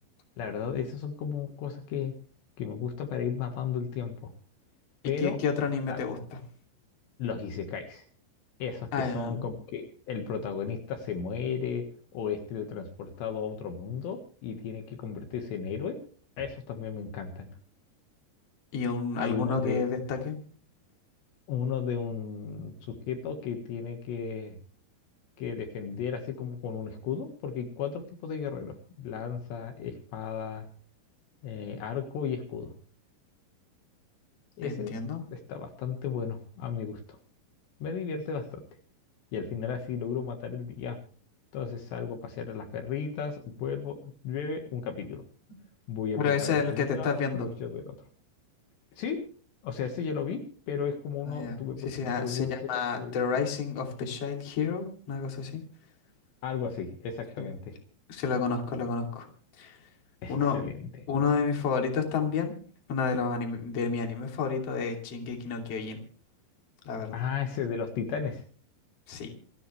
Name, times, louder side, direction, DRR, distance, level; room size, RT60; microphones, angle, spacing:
voice 1, 0.4-2.1 2.6-4.3 5.1-5.4 5.9-6.0 7.2-8.0 8.6-11.8 12.1-16.0 16.4-17.5 19.1-19.9 21.5-24.6 25.4-30.7 31.4-32.7 34.6-35.0 35.3-37.2 37.8-38.6 39.3-41.0 41.5-45.3 45.9-47.1 47.3-48.0 48.9-49.2 49.6-53.4 56.4-57.8 60.2-61.1 67.1-68.4, left 7 dB, 70° left, 5 dB, 3.6 m, -34 dB
voice 2, 5.2-6.2 8.9-9.4 18.7-20.4 34.6-35.2 46.2-47.5 51.3-51.6 51.8-55.6 57.4-57.5 58.1-59.3 59.6-59.8 60.3-60.6 61.1-62.5 62.9-66.0 66.8-67.2 69.1-69.3, left 5 dB, 35° left, 2 dB, 3.2 m, -30 dB
28.0 x 10.5 x 3.3 m, 0.42 s
omnidirectional pair, 5.6 m